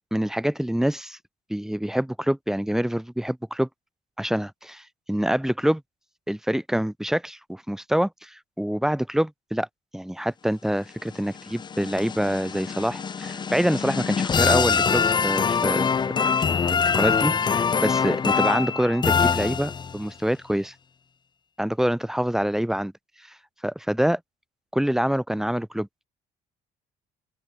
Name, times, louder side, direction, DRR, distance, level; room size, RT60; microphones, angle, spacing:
voice 1, 0.1-1.2 1.5-3.7 4.2-5.8 6.3-9.7 9.9-15.9 16.7-20.7 21.6-22.9 23.6-24.2 24.7-25.9, equal, 5° right, 1.5 m, -26 dB
sound 1, 11.1-20.1, left 6 dB, 25° left, 0.6 m, -24 dB
open air
cardioid pair, 110°, 17 cm